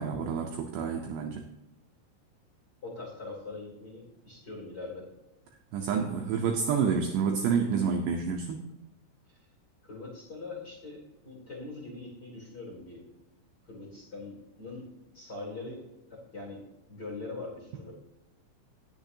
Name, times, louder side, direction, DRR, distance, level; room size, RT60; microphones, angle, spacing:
voice 1, 0.0-1.4 5.7-8.6, right 6 dB, 80° right, 2 dB, 2.6 m, -29 dB
voice 2, 2.8-5.1 9.3-9.5 9.8-13.0 13.6-14.9 15.1-15.8 16.1-17.9, left 3 dB, 25° left, -3 dB, 2.8 m, -42 dB
19.5 x 6.9 x 2.8 m, 0.97 s
omnidirectional pair, 5.8 m